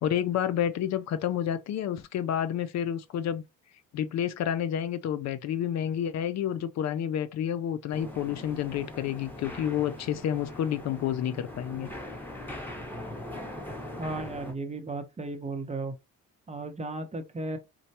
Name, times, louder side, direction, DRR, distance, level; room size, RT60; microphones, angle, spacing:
voice 1, 0.0-3.4 3.9-11.9, left 10 dB, 65° left, 0.5 m, -29 dB
sound 1, 7.9-14.5, left 1 dB, 5° left, 1.1 m, -41 dB
voice 2, 14.0-15.9 16.5-17.6, right 2 dB, 20° right, 0.7 m, -35 dB
4.3 x 2.2 x 2.7 m
cardioid pair, 90°, 30 cm